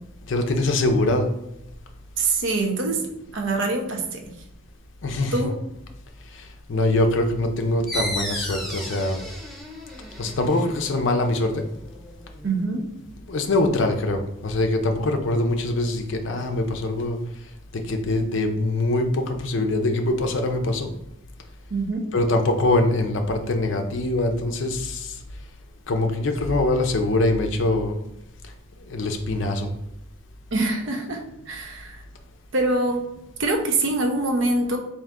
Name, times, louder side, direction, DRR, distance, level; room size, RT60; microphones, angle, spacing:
voice 1, 0.3-1.3 5.0-5.5 6.7-9.2 10.2-11.6 13.3-17.2 17.9-20.9 22.1-25.1 25.9-28.0 28.9-29.7, left 2 dB, 60° left, 5 dB, 0.5 m, -23 dB
voice 2, 2.2-3.0 3.3-4.2 5.3-5.5 12.4-12.9 21.7-22.1 30.5-32.0 32.5-33.0 33.4-34.8, right 2 dB, 60° right, 3 dB, 0.6 m, -24 dB
sound 1, 7.9-13.1, equal, ahead, 0.4 m, -35 dB
3.6 x 2.6 x 3.5 m, 0.86 s
head